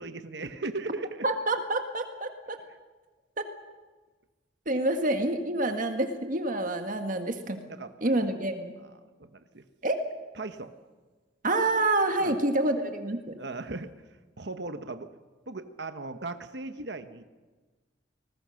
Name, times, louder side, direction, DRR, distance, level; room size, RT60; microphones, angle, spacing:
voice 1, 0.0-1.3 2.7-2.8 7.7-8.2 8.8-9.6 10.3-10.7 12.2-12.3 13.4-13.9 14.4-15.1 15.5-17.2, right 3 dB, 65° right, 9 dB, 1.1 m, -38 dB
voice 2, 1.2-2.6 3.4-3.5 4.6-7.6 8.0-8.7 9.8-10.0 11.4-13.3, right 2 dB, 45° right, 6 dB, 1.6 m, -27 dB
28.5 x 20.5 x 6.4 m, 1.3 s
head